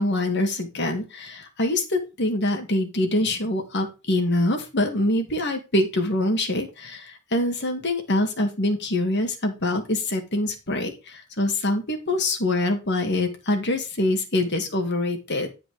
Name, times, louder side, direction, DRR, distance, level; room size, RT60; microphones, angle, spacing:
voice 1, 0.0-15.5, left 1 dB, 55° left, 4 dB, 2.5 m, -25 dB
11.0 x 5.0 x 5.0 m, 0.28 s
head